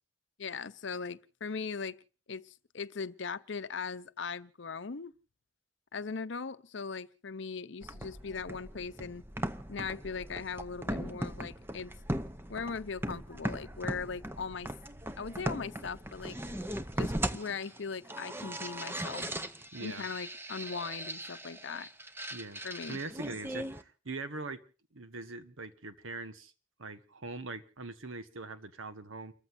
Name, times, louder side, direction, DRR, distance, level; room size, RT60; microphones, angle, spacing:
voice 1, 0.4-2.0 2.3-5.1 5.9-9.2 9.7-11.9 12.5-14.7 15.2-16.4 17.0-19.3 19.8-21.9 22.6-23.0, left 5 dB, 65° left, 0.7 m, -39 dB
sound 1, 7.8-23.8, right 1 dB, 10° right, 0.7 m, -39 dB
voice 2, 19.7-20.1 22.3-24.6 24.9-26.5 26.8-29.3, right 3 dB, 85° right, 1.4 m, -42 dB
30.0 x 14.5 x 2.6 m
head